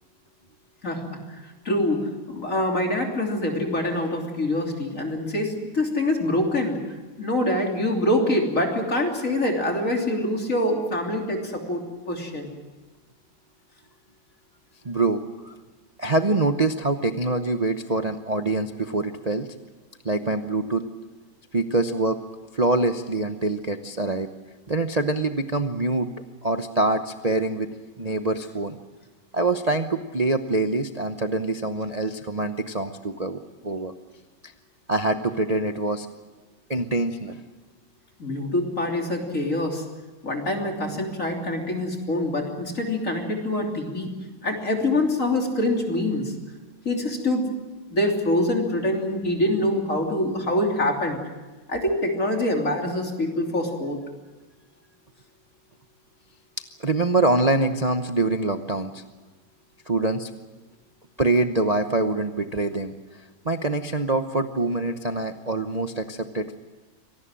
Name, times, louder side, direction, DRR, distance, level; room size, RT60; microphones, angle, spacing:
voice 1, 0.8-12.5 38.2-39.8 40.2-44.1 44.4-46.3 46.9-47.4 47.9-51.2 51.7-54.0, left 1 dB, 40° left, 2 dB, 3.5 m, -25 dB
voice 2, 14.8-15.5 16.0-19.5 20.0-20.9 21.5-22.2 22.5-24.3 24.7-26.1 26.4-27.7 28.0-28.8 29.3-33.9 34.4-34.5 34.9-36.1 36.7-37.4 56.8-59.0 59.9-60.3 61.2-62.9 63.4-66.6, right 2 dB, 45° right, 7 dB, 0.5 m, -25 dB
25.5 x 18.5 x 7.6 m, 1.3 s
omnidirectional pair, 2.2 m